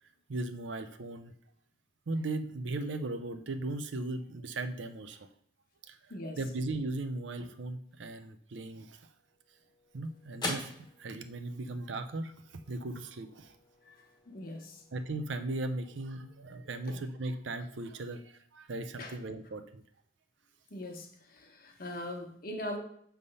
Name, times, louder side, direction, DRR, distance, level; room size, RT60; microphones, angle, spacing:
voice 1, 0.3-1.3 2.1-5.3 5.9-6.0 6.3-9.1 9.9-12.3 12.7-13.6 14.9-19.8, right 2 dB, 80° right, 9 dB, 0.6 m, -37 dB
sound 1, 9.1-17.7, left 2 dB, 25° left, 1.0 m, -46 dB
voice 2, 14.3-14.8 16.9-17.0 19.0-19.1 20.7-22.8, left 1 dB, 50° left, 2 dB, 1.1 m, -41 dB
6.7 x 3.4 x 5.4 m, 0.65 s
head